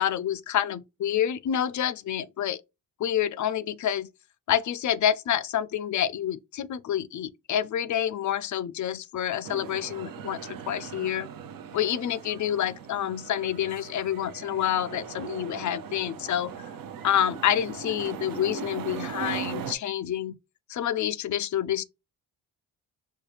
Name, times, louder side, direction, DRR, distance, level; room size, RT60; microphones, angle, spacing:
voice 1, 0.0-2.6 3.0-4.1 4.5-11.3 11.7-16.5 17.0-20.4 20.7-21.8, left 10 dB, 45° left, 0.4 m, -28 dB
sound 1, 9.4-19.7, right 7 dB, 55° right, 0.7 m, -39 dB
4.6 x 2.2 x 3.3 m
supercardioid pair, 65°, 41 cm